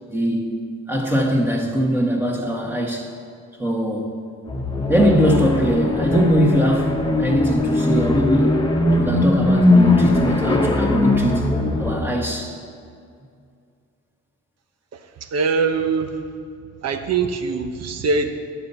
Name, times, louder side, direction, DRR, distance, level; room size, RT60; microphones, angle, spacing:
voice 1, 0.1-0.5 0.9-3.1 3.6-4.1 4.9-6.9 7.2-8.6 8.9-11.4 11.8-12.6, equal, 5° right, -1 dB, 1.8 m, -21 dB
sound 1, 4.5-12.1, left 2 dB, 15° left, 1.3 m, -20 dB
voice 2, 14.9-16.2 16.8-18.3, right 4 dB, 55° right, 8 dB, 1.0 m, -23 dB
10.5 x 7.0 x 5.7 m, 2.3 s
cardioid pair, 90°, 30 cm